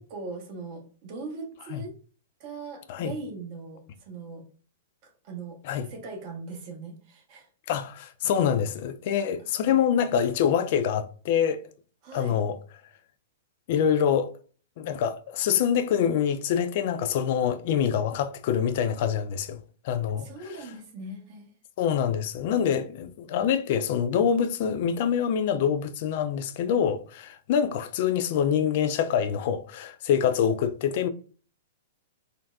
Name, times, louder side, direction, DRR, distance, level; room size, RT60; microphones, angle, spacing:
voice 1, 0.0-1.9 2.4-4.4 5.0-7.5 12.0-12.4 20.2-21.5, right 3 dB, 45° right, 0.9 m, -40 dB
voice 2, 7.7-11.6 12.1-12.6 13.7-14.3 14.8-19.6 19.8-20.3 21.8-31.1, left 8 dB, 50° left, 0.3 m, -25 dB
3.8 x 2.2 x 2.3 m
figure-of-eight pair, 110°, 0 cm